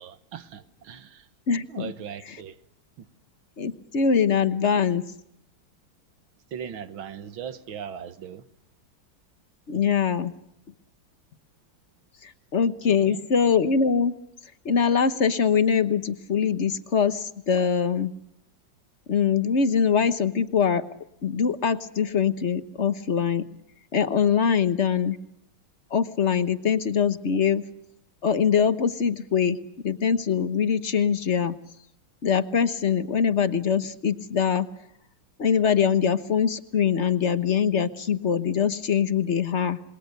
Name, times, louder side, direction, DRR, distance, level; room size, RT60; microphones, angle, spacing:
voice 1, 0.0-1.3 1.7-2.6 3.0-3.1 6.5-8.4 12.8-13.2, right 8 dB, 80° right, 2.1 m, -39 dB
voice 2, 1.5-1.9 2.2-2.4 3.6-5.1 9.7-10.4 12.1-14.1 14.4-18.1 19.1-20.9 21.2-23.5 23.9-25.2 25.9-27.7 28.2-31.9 32.2-34.9 35.4-39.8, left 7 dB, 40° left, 1.2 m, -23 dB
27.5 x 22.0 x 6.7 m
omnidirectional pair, 2.2 m